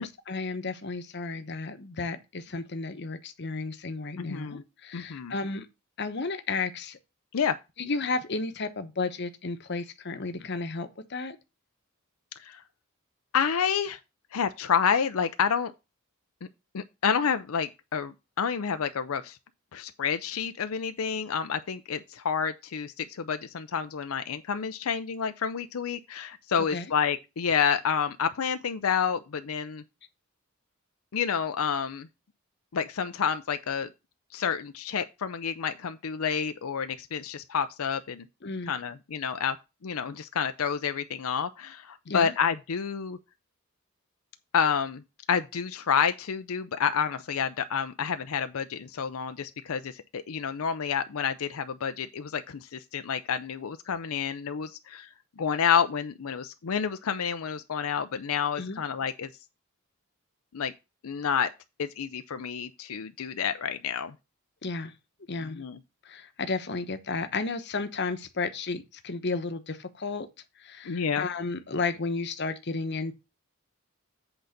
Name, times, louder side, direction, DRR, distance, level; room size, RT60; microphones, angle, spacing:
voice 1, 0.0-5.7 6.0-7.0 7.8-11.4 26.7-26.9 38.4-38.7 42.1-42.3 58.6-58.8 64.6-64.9 65.3-65.6 66.0-70.3 70.6-73.2, left 3 dB, 55° left, 1.0 m, -33 dB
voice 2, 4.2-4.6 4.9-5.3 7.3-7.5 12.4-12.6 13.3-14.0 14.3-15.7 16.7-19.4 19.7-29.8 31.1-32.1 32.7-33.9 34.3-38.2 38.7-39.6 39.8-43.2 44.5-45.0 45.3-55.1 55.4-59.3 60.5-60.7 61.0-61.5 61.8-64.1 65.5-65.8 70.9-71.2, left 7 dB, 85° left, 0.5 m, -29 dB
8.0 x 4.0 x 6.5 m
head